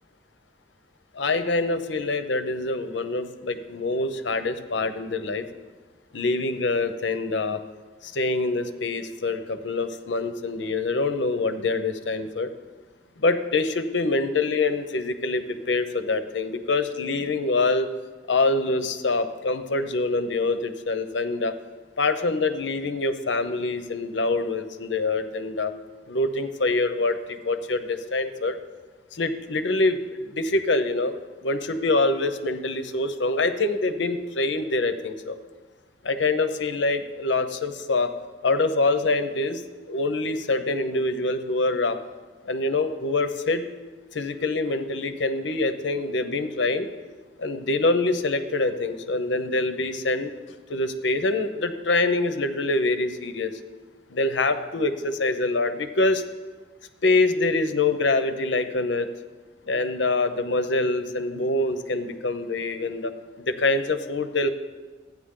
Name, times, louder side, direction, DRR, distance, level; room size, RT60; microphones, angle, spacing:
voice 1, 1.2-5.4 6.1-7.6 8.0-12.5 13.2-17.9 18.3-21.5 22.0-25.7 26.1-28.6 29.1-30.0 30.4-31.1 31.4-35.4 36.0-38.1 38.4-39.6 39.9-42.0 42.5-43.6 44.1-46.9 47.4-50.3 50.7-53.5 54.1-56.2 57.0-59.1 59.7-63.1 63.4-64.5, left 2 dB, 75° left, 10 dB, 0.8 m, -25 dB
14.5 x 9.3 x 3.8 m, 1.4 s
head